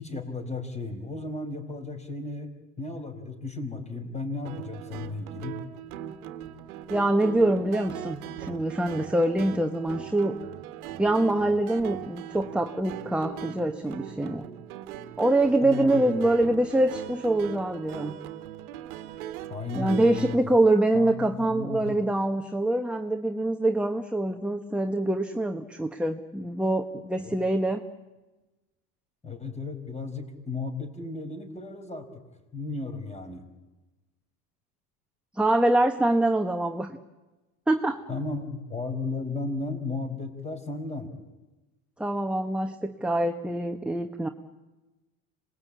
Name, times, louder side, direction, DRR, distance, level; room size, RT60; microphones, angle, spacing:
voice 1, 0.0-5.6 15.6-16.2 19.5-20.6 20.9-22.0 27.2-27.4 29.2-32.1 32.5-33.5 38.1-41.1, left 3 dB, 15° left, 6 dB, 4.8 m, -35 dB
sound 1, 4.4-20.4, right 11 dB, 85° right, 1.5 m, -39 dB
voice 2, 6.9-10.4 11.0-14.4 15.2-18.2 19.7-27.8 35.3-36.9 37.7-38.0 42.0-44.3, right 1 dB, 5° right, 5 dB, 1.1 m, -25 dB
26.5 x 20.5 x 8.5 m, 1.1 s
supercardioid pair, 105°, 42 cm